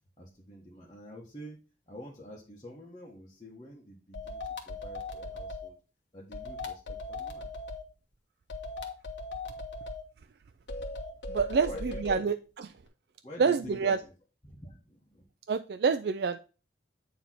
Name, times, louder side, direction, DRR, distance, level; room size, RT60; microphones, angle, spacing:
voice 1, 0.2-1.6 1.9-5.8 6.1-7.5 11.7-12.4 13.2-14.1 14.4-15.2, left 1 dB, 25° left, -6 dB, 1.5 m, -47 dB
sound 1, 4.1-5.7 6.3-7.8 8.5-10.0 10.7-12.2, left 2 dB, 90° left, 1.4 m, -38 dB
voice 2, 11.3-12.4 13.4-14.0 15.5-16.4, right 5 dB, 65° right, 9 dB, 0.4 m, -27 dB
8.8 x 3.4 x 5.8 m, 0.34 s
head